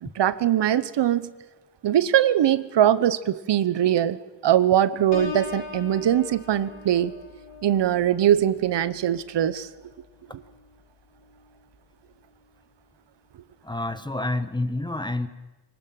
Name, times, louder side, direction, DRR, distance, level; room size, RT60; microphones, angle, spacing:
voice 1, 0.0-1.3 1.8-4.2 4.4-7.1 7.6-9.7, right 11 dB, 85° right, 15 dB, 1.0 m, -21 dB
Piano, 5.1-10.7 11.2-11.6, left 4 dB, 80° left, 3.9 m, -40 dB
voice 2, 13.6-15.3, left 2 dB, 10° left, 11 dB, 1.2 m, -28 dB
24.5 x 18.5 x 7.6 m, 1.2 s
wide cardioid pair, 135°, 41 cm